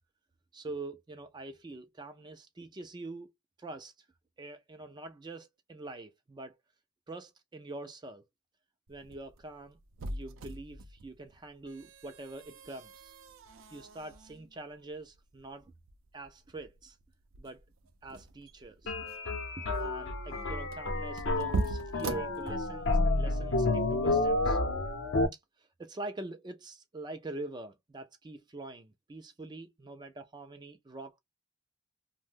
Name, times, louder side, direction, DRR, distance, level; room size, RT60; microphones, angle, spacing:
voice 1, 0.5-3.3 3.6-3.9 4.4-6.6 7.1-8.2 8.9-9.8 10.1-13.4 13.7-15.7 16.1-17.0 17.4-17.6 18.0-18.9 19.6-24.6 25.6-31.2, right 2 dB, 20° right, 0.4 m, -44 dB
sound 1, 8.9-23.0, right 2 dB, 75° right, 0.5 m, -42 dB
sound 2, 18.9-25.3, left 2 dB, 60° left, 0.7 m, -30 dB
2.6 x 2.1 x 3.4 m
head